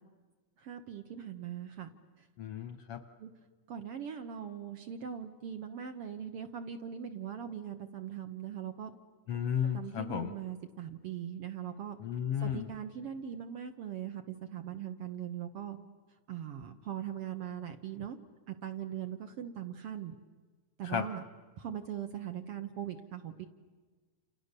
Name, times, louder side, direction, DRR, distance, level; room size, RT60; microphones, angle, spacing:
voice 1, 0.6-1.9 3.2-3.3 3.7-8.9 9.7-12.0 12.4-15.8 16.3-18.2 18.5-20.1 20.8-21.2 21.6-23.5, right 9 dB, 60° right, 7 dB, 1.8 m, -40 dB
voice 2, 2.4-3.0 9.3-10.3 12.0-12.7 20.8-21.1, left 9 dB, 65° left, 9 dB, 1.5 m, -33 dB
29.5 x 29.0 x 6.8 m, 1.4 s
omnidirectional pair, 3.6 m